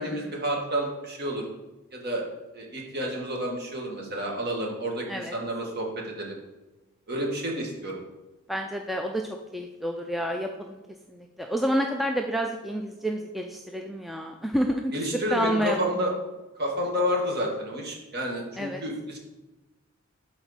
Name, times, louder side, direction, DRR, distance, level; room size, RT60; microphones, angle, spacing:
voice 1, 0.0-1.5 1.9-2.3 2.5-6.4 7.1-8.0 14.9-16.1 16.6-19.2, equal, 45° right, 0 dB, 1.7 m, -30 dB
voice 2, 8.5-10.8 11.1-14.9 15.3-15.9 18.6-18.8, equal, ahead, 2 dB, 0.3 m, -29 dB
12.0 x 4.3 x 4.0 m, 1.1 s
head